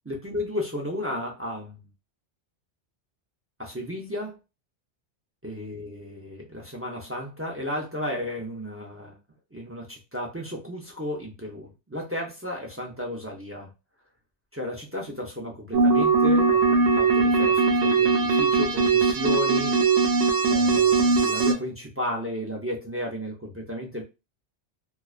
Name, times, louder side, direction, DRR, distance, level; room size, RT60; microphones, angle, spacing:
voice 1, 0.0-1.9 3.6-4.4 5.4-9.2 9.5-13.7 14.5-19.8 20.5-24.0, left 1 dB, 20° right, 0.3 m, -33 dB
sound 1, 15.7-21.5, right 4 dB, 85° right, 0.9 m, -20 dB
2.3 x 2.3 x 2.4 m
omnidirectional pair, 1.2 m